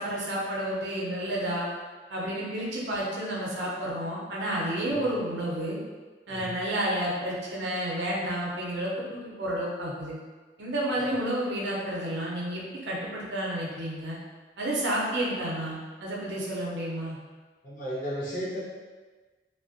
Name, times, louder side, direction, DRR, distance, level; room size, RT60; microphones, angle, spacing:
voice 1, 0.0-1.7 2.1-5.8 6.3-10.2 10.6-14.2 14.6-17.2, right 1 dB, 75° right, -4 dB, 0.6 m, -30 dB
voice 2, 17.6-18.6, equal, 50° left, -7 dB, 0.7 m, -35 dB
2.4 x 2.1 x 2.5 m, 1.3 s
head